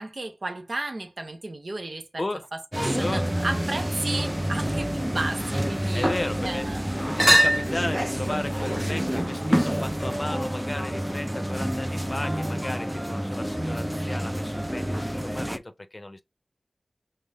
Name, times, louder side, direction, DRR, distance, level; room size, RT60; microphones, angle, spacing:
voice 1, 0.0-2.2 2.5-6.1 6.4-6.9, right 2 dB, 65° right, 0.9 m, -33 dB
sound 1, 2.7-15.6, equal, 10° right, 0.5 m, -27 dB
voice 2, 5.9-6.7 7.1-16.2, left 2 dB, 40° left, 0.7 m, -34 dB
5.2 x 2.1 x 3.4 m
wide cardioid pair, 55°, 0 cm